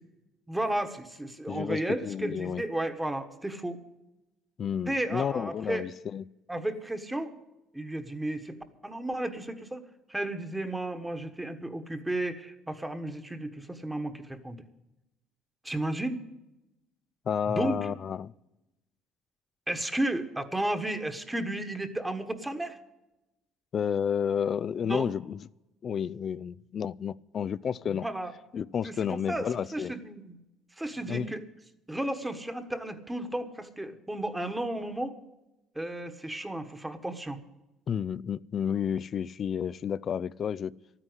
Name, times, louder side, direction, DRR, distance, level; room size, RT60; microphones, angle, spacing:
voice 1, 0.5-3.8 4.9-5.9 6.5-7.3 7.7-8.6 8.8-9.8 10.1-14.6 15.6-16.2 17.5-17.8 19.7-22.8 24.8-25.1 27.9-28.3 28.8-30.4 30.8-31.4 31.9-35.1 35.7-37.4, right 1 dB, 10° right, 1.4 m, -33 dB
voice 2, 1.5-2.6 4.6-6.2 17.3-18.3 23.7-25.4 25.8-28.1 28.5-29.9 31.1-31.3 37.9-40.7, left 8 dB, 45° left, 0.4 m, -31 dB
12.5 x 9.9 x 8.0 m
supercardioid pair, 85°, 0 cm